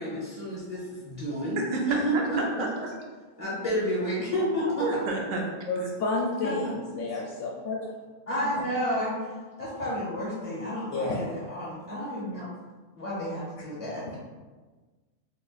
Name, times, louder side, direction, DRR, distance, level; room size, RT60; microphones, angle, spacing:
voice 1, 0.0-1.6 1.9-2.4 3.4-4.8 6.4-6.7 8.3-9.2 9.6-12.5 13.0-14.2, equal, 35° left, -7 dB, 0.6 m, -30 dB
voice 2, 1.6-2.7 4.8-5.4, right 3 dB, 75° right, 0 dB, 1.0 m, -30 dB
voice 3, 5.7-7.9 8.4-8.6 10.9-11.3, left 3 dB, 70° left, -3 dB, 0.9 m, -31 dB
2.9 x 2.4 x 3.9 m, 1.3 s
omnidirectional pair, 1.4 m